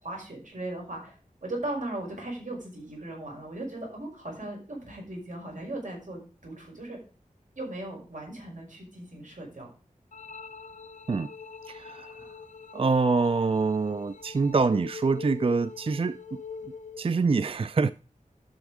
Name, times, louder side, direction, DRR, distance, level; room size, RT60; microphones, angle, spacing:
voice 1, 0.0-7.0 7.6-9.7, right 1 dB, 65° right, 5.6 m, -38 dB
sound 1, 10.1-17.1, left 5 dB, 60° left, 0.5 m, -43 dB
voice 2, 11.7-12.1 12.7-16.2 17.0-17.9, right 4 dB, 40° right, 0.4 m, -25 dB
12.0 x 6.3 x 4.9 m
wide cardioid pair, 60°, 14 cm